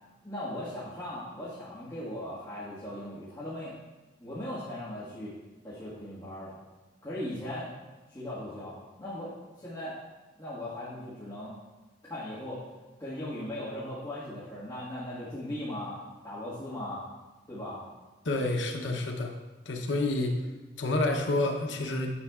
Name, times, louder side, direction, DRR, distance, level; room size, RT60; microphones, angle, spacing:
voice 1, 0.2-3.8 4.2-5.3 5.6-6.6 7.0-7.7 8.1-10.0 10.4-11.5 12.0-12.6 13.0-16.0 16.2-17.0 17.5-17.8, left 1 dB, 20° left, -12 dB, 1.6 m, -38 dB
voice 2, 18.2-19.3 19.7-20.4 20.8-22.1, left 2 dB, 85° left, 3 dB, 0.8 m, -28 dB
9.8 x 7.1 x 2.4 m, 1.2 s
head